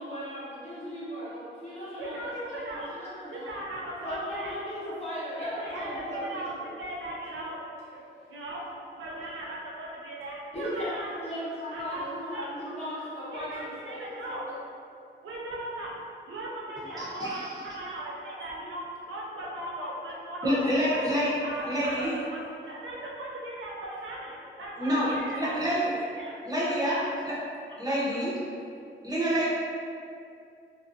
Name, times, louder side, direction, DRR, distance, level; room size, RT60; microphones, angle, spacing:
voice 1, 0.0-3.6 4.0-6.7 10.5-14.6, equal, 30° left, -10 dB, 0.9 m, -37 dB
voice 2, 2.0-2.9 3.3-4.5 5.4-7.6 7.9-8.0 8.3-8.7 9.0-11.1 11.7-12.0 12.3-12.5 13.3-14.4 15.2-15.9 16.3-21.0 21.4-22.4 22.7-25.5 26.1-26.3 26.7-27.1 27.7-28.3, right 1 dB, 75° right, -5 dB, 0.5 m, -38 dB
voice 3, 17.0-17.4 20.4-21.3 21.7-22.1 24.8-25.9 26.4-27.0 27.3-27.4 27.8-28.3 29.0-29.5, equal, 20° right, -9 dB, 0.7 m, -27 dB
2.5 x 2.2 x 2.5 m, 2.4 s
wide cardioid pair, 90°, 20 cm